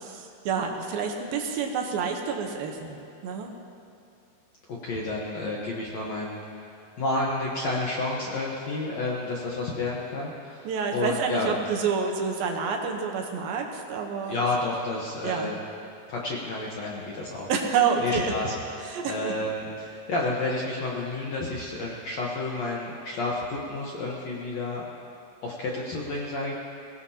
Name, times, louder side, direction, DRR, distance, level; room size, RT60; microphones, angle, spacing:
voice 1, 0.0-3.0 3.2-3.5 10.6-14.4 15.2-15.5 17.5-18.3 18.9-19.3, right 6 dB, 75° right, 2 dB, 2.7 m, -28 dB
voice 2, 4.8-11.6 14.3-15.6 16.1-17.5 18.0-24.9 25.4-26.5, left 2 dB, 65° left, -3 dB, 1.8 m, -30 dB
22.5 x 17.0 x 2.9 m, 2.5 s
omnidirectional pair, 4.5 m